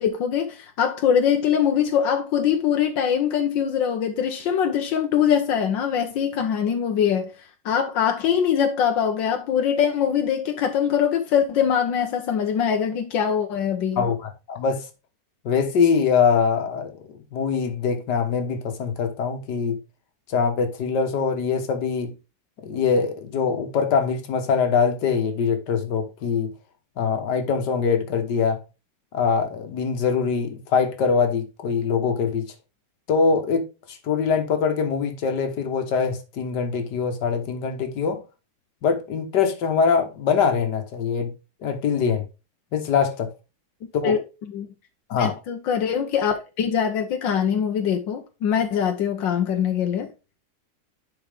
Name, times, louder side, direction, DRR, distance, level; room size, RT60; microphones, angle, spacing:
voice 1, 0.0-7.3 7.6-14.0 44.0-44.2 44.5-44.7 45.2-50.1, left 8 dB, 85° left, 1.6 m, -23 dB
voice 2, 14.0-14.9 15.5-17.0 17.3-19.8 20.3-22.1 22.6-26.5 27.0-28.6 29.1-32.5 33.1-38.2 38.8-41.3 41.6-42.2 42.7-43.3 43.9-44.2 45.1-45.3, left 6 dB, 70° left, 1.9 m, -23 dB
10.5 x 4.7 x 3.5 m
omnidirectional pair, 1.9 m